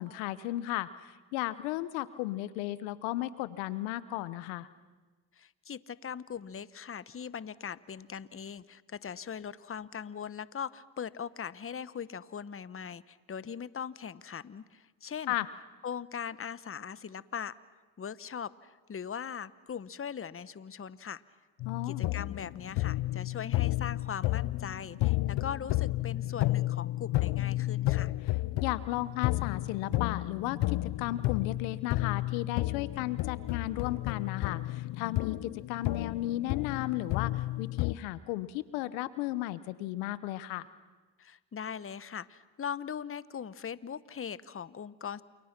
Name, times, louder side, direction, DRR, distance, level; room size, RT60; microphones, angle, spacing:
voice 1, 0.0-4.7 15.3-15.5 21.6-22.1 28.6-40.7, left 16 dB, 90° left, 16 dB, 1.1 m, -35 dB
voice 2, 5.4-15.3 15.8-17.5 18.0-21.2 21.9-28.1 41.2-45.2, left 7 dB, 30° left, 17 dB, 1.0 m, -40 dB
sound 1, 21.6-37.9, left 17 dB, 65° left, 0.8 m, -32 dB
29.0 x 28.5 x 6.0 m, 1.3 s
supercardioid pair, 65°, 45 cm